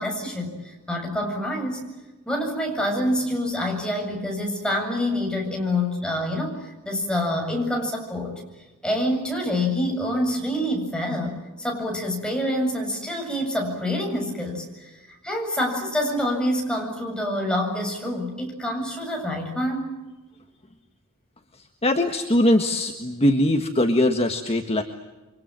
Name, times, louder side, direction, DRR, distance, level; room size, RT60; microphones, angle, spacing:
voice 1, 0.0-1.9 2.3-8.4 8.8-15.0 15.2-19.9, left 1 dB, 5° left, 1 dB, 7.6 m, -26 dB
voice 2, 21.8-24.8, left 1 dB, 25° left, 5 dB, 1.6 m, -21 dB
29.5 x 24.5 x 7.7 m, 1.1 s
head